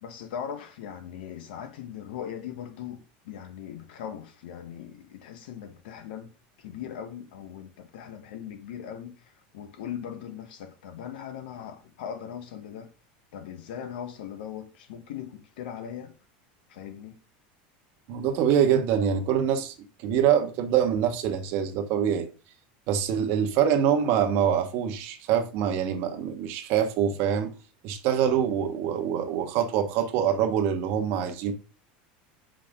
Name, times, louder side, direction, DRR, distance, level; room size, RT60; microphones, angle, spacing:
voice 1, 0.0-6.3 6.6-12.9 13.3-16.1 16.7-17.2 28.4-28.5, left 9 dB, 90° left, 1.1 m, -39 dB
voice 2, 18.1-19.7 20.0-22.3 22.9-27.5 27.8-31.5, right 9 dB, 50° right, 1.1 m, -25 dB
5.8 x 5.0 x 3.6 m
supercardioid pair, 155°, 5 cm